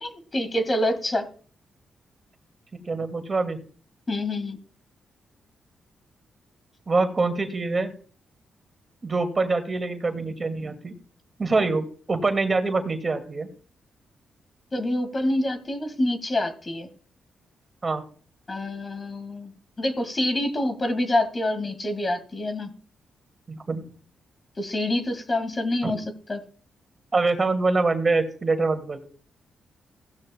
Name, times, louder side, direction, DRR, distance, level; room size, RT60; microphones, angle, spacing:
voice 1, 0.0-1.3 4.1-4.6 14.7-16.9 18.5-19.5 19.8-22.7 24.6-26.4, left 1 dB, 30° left, 9 dB, 2.0 m, -26 dB
voice 2, 2.9-3.6 6.9-7.9 9.0-10.9 11.4-13.5 17.8-18.0 23.5-23.8 25.8-25.9 27.1-29.0, right 3 dB, 30° right, 7 dB, 2.2 m, -24 dB
16.0 x 12.5 x 2.3 m, 0.43 s
cardioid pair, 90°, 0 cm